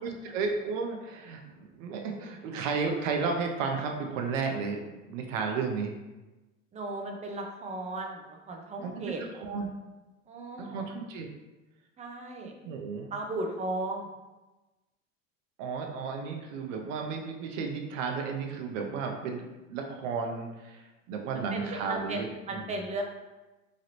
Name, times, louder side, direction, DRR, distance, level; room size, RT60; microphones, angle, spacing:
voice 1, 0.0-6.0 8.8-9.7 10.6-11.3 12.6-13.1 15.6-22.7, right 5 dB, 70° right, 3 dB, 0.6 m, -33 dB
voice 2, 6.7-8.2 8.5-9.2 10.3-10.8 12.0-12.5 13.1-14.1 21.5-23.0, right 2 dB, 20° right, 2 dB, 0.4 m, -35 dB
3.0 x 2.4 x 2.8 m, 1.1 s
hypercardioid pair, 90°, 39 cm